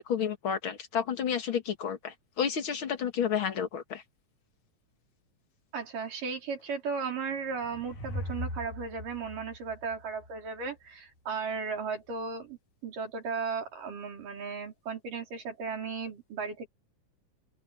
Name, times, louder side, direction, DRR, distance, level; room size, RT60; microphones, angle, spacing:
voice 1, 0.0-4.0, left 8 dB, 45° left, 2.2 m, -31 dB
voice 2, 5.7-16.7, right 5 dB, 80° right, 6.1 m, -36 dB
sound 1, 7.2-10.7, equal, 75° left, 6.4 m, -40 dB
open air
omnidirectional pair, 3.7 m